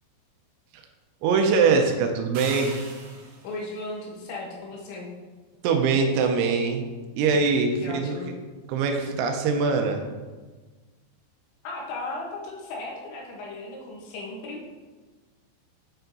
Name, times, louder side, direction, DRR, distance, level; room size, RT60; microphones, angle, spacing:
voice 1, 1.2-2.7 5.6-6.9 7.2-8.2 8.7-10.0, right 5 dB, 85° right, 4 dB, 2.8 m, -22 dB
sound 1, 2.3-3.6, right 3 dB, 70° right, 2.9 m, -40 dB
voice 2, 3.4-5.1 7.8-8.3 11.6-14.6, left 2 dB, 75° left, -2 dB, 3.0 m, -36 dB
8.6 x 4.5 x 2.6 m, 1.3 s
omnidirectional pair, 5.7 m